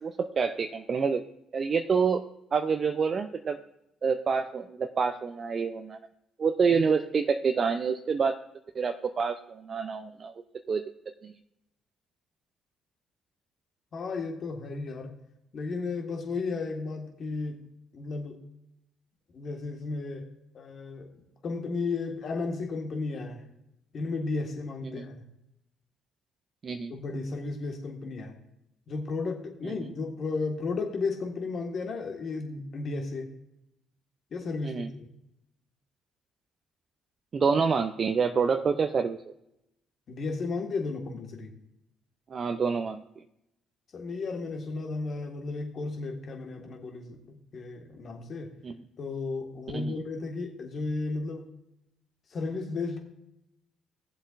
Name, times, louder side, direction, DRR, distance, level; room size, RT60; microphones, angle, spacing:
voice 1, 0.0-1.2 1.5-2.2 2.5-3.6 4.0-6.0 6.4-8.4 8.7-10.3 10.7-10.8 11.2-11.3 24.8-25.1 26.6-26.9 29.6-29.9 34.6-34.9 37.3-39.2 42.3-43.0 48.6-48.7 49.7-50.0, right 5 dB, 45° right, 6 dB, 0.6 m, -27 dB
voice 2, 13.9-15.1 15.5-17.6 17.9-18.4 19.3-20.3 20.5-23.5 23.9-25.2 26.9-28.4 28.9-33.3 34.3-35.1 40.1-41.5 43.9-48.5 49.0-51.5 52.3-53.0, left 3 dB, 50° left, 3 dB, 1.8 m, -34 dB
17.0 x 7.4 x 2.6 m, 0.84 s
hypercardioid pair, 50°, 0 cm